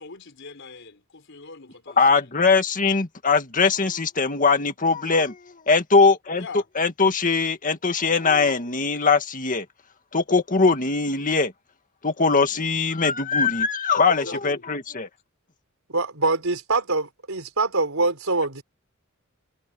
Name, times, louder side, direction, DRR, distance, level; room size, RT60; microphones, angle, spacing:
voice 1, 0.0-2.3 6.3-6.7 14.0-14.7, left 4 dB, 60° left, 4.4 m, -41 dB
voice 2, 2.0-5.4 5.7-6.4 6.8-9.7 10.1-11.5 12.0-15.1, left 4 dB, 40° left, 1.9 m, -21 dB
voice 3, 15.9-18.6, right 3 dB, 80° right, 4.1 m, -24 dB
head